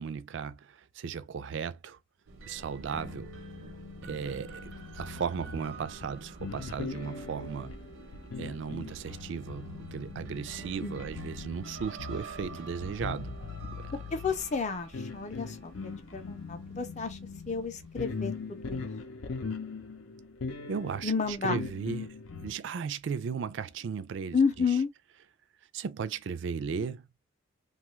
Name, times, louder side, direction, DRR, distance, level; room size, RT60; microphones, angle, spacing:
voice 1, 0.0-2.0 2.5-3.3 4.0-7.7 8.4-13.3 13.6-14.0 20.7-22.1 22.4-24.4 25.7-27.1, right 6 dB, 60° right, 0.3 m, -36 dB
sound 1, 2.3-18.8, right 3 dB, 90° right, 0.7 m, -49 dB
sound 2, 2.7-22.5, left 4 dB, 85° left, 0.6 m, -41 dB
voice 2, 14.1-17.2 17.5-18.9 21.0-21.6 24.3-24.9, left 5 dB, 35° left, 0.5 m, -31 dB
2.7 x 2.3 x 3.0 m
head